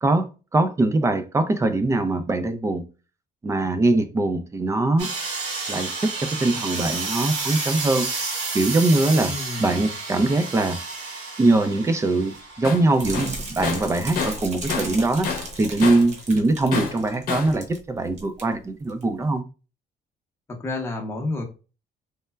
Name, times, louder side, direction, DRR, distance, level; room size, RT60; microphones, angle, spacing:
voice 1, 0.0-2.8 3.4-5.1 5.7-8.1 8.5-10.8 11.4-15.3 15.6-19.4, right 2 dB, 15° right, 0.3 m, -22 dB
sound 1, 5.0-13.6, right 3 dB, 75° right, 1.1 m, -31 dB
voice 2, 9.2-9.9 20.5-21.4, left 2 dB, 15° left, 0.7 m, -30 dB
Tools, 12.6-12.9 13.1-15.0 15.2-16.2 16.7-17.6, left 5 dB, 60° left, 0.8 m, -29 dB
sound 2, 12.9-17.8 18.1-18.4 18.9-19.0, right 2 dB, 45° right, 0.9 m, -36 dB
3.2 x 2.0 x 2.2 m
cardioid pair, 110°, 17 cm